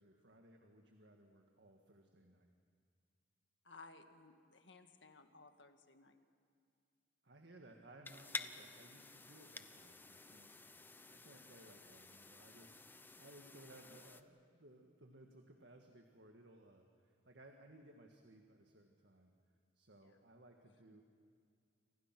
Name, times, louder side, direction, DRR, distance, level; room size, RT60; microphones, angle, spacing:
voice 1, 0.0-2.5 7.2-10.5 10.8-19.3 19.8-21.0, right 1 dB, 70° right, 3 dB, 1.8 m, -61 dB
voice 2, 3.6-6.2 20.0-20.2 20.9-21.0, left 3 dB, 80° left, 7 dB, 1.8 m, -59 dB
sound 1, 8.1-14.2, left 3 dB, 10° left, 0.8 m, -51 dB
29.5 x 26.0 x 6.1 m, 2.2 s
head